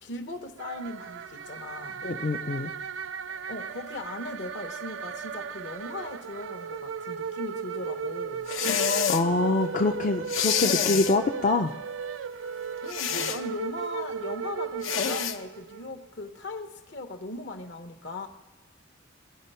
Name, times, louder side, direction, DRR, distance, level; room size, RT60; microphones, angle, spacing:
voice 1, 0.0-2.0 3.5-8.5 12.8-18.3, left 2 dB, 60° left, 7 dB, 1.1 m, -38 dB
sound 1, 0.6-15.9, right 6 dB, 75° right, 0.4 m, -36 dB
voice 2, 2.0-2.7 8.6-11.7, left 3 dB, 40° left, 3 dB, 0.5 m, -25 dB
sound 2, 8.5-9.2 10.3-11.2 12.9-13.4 14.8-15.4, left 8 dB, 85° left, 0.9 m, -27 dB
17.5 x 11.0 x 5.6 m, 1.2 s
head